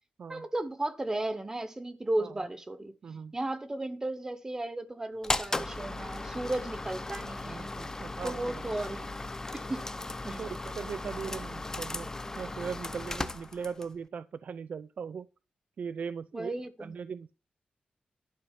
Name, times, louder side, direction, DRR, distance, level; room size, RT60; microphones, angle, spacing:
voice 1, 0.3-2.9 3.3-7.7 8.2-9.1 9.5-9.9 10.2-10.5 16.3-16.9, right 1 dB, 20° right, 0.9 m, -35 dB
voice 2, 3.0-3.4 7.4-8.6 10.3-15.3 15.8-16.5 16.8-17.3, right 6 dB, 60° right, 0.5 m, -39 dB
sound 1, 5.2-14.0, left 2 dB, 20° left, 0.7 m, -37 dB
11.5 x 5.2 x 7.3 m
wide cardioid pair, 150°, 3 cm